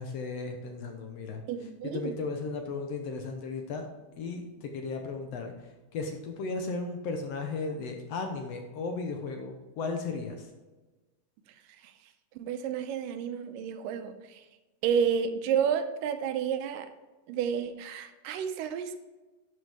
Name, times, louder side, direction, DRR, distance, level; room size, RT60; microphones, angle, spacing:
voice 1, 0.0-1.4 1.8-3.8 4.2-5.5 5.9-10.5, left 4 dB, 70° left, 4 dB, 1.6 m, -35 dB
voice 2, 1.5-2.1 11.8-11.9 12.4-14.4 14.8-16.9 17.3-19.0, right 7 dB, 85° right, 9 dB, 2.3 m, -30 dB
11.5 x 7.8 x 3.5 m, 1.2 s
omnidirectional pair, 3.8 m